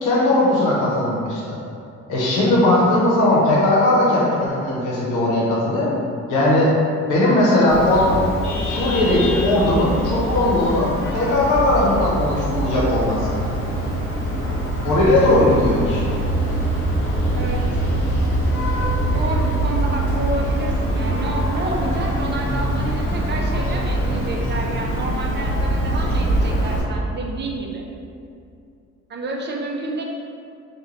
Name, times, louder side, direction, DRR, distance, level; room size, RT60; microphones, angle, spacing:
voice 1, 0.0-1.6 2.1-5.9 6.3-6.7 7.1-8.2 8.7-13.3 14.8-16.0, left 1 dB, 90° left, -5 dB, 0.7 m, -18 dB
Vehicle horn car horn honking, 7.7-26.8, right 1 dB, 45° left, 0.8 m, -23 dB
voice 2, 15.4-15.8 17.3-17.8 19.0-27.8 29.1-30.0, right 2 dB, 35° right, 0 dB, 0.4 m, -29 dB
3.1 x 2.2 x 2.4 m, 2.5 s
cardioid pair, 90°, 30 cm